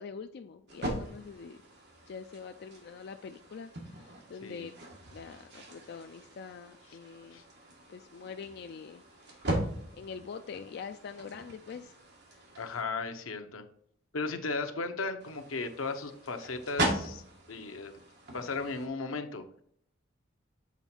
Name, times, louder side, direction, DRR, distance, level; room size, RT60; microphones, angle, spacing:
voice 1, 0.0-1.6 2.1-4.7 5.1-7.4 7.9-9.7 9.9-11.9 12.3-12.5, left 5 dB, 55° left, 7 dB, 0.3 m, -45 dB
sound 1, 0.7-12.8 15.2-18.9, right 1 dB, 55° right, 1.6 m, -39 dB
voice 2, 4.4-4.7 7.3-7.4 12.6-13.6 14.1-17.2 17.5-17.9 18.3-19.4, left 3 dB, 85° left, 7 dB, 0.8 m, -36 dB
7.3 x 3.9 x 4.4 m, 0.66 s
head